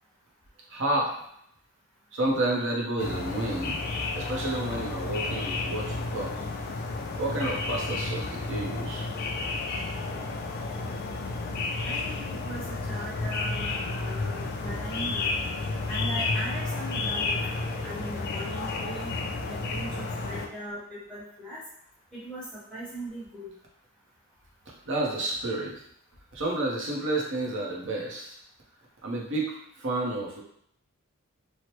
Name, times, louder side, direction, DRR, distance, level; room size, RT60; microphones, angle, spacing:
voice 1, 0.7-1.1 2.1-3.8 4.1-6.3 7.2-9.0 24.7-25.8 26.3-28.4 29.0-30.4, right 2 dB, 60° right, -2 dB, 0.7 m, -30 dB
sound 1, 3.0-20.5, left 3 dB, 45° left, 0.3 m, -31 dB
voice 2, 11.8-15.4 15.9-17.4 17.8-19.1 19.5-21.6 22.1-23.5, right 1 dB, 5° left, -10 dB, 1.1 m, -39 dB
3.2 x 2.0 x 2.9 m, 0.69 s
head